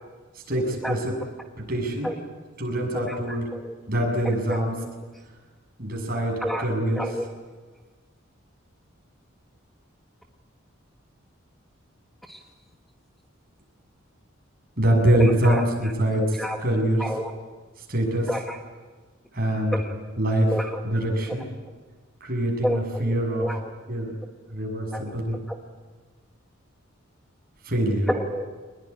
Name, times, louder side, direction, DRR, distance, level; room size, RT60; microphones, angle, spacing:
voice 1, 0.5-1.1 1.6-2.1 2.6-3.4 3.9-4.7 5.8-7.0 14.8-17.0 17.9-18.3 19.3-19.8 20.2-20.5 20.8-21.5 22.2-23.5 23.9-24.2 24.5-25.4 27.6-28.1, right 1 dB, 45° right, 0 dB, 7.3 m, -24 dB
voice 2, 2.9-3.7 4.5-4.7 6.4-6.7 7.0-7.3 12.3-12.4 15.1-15.9 16.2-16.6 17.0-17.3 18.3-18.6 19.7-20.0 20.5-20.8 22.6-23.7 24.9-25.0 25.5-25.6 28.1-28.5, equal, ahead, 2 dB, 1.3 m, -30 dB
24.5 x 21.0 x 9.9 m, 1.4 s
head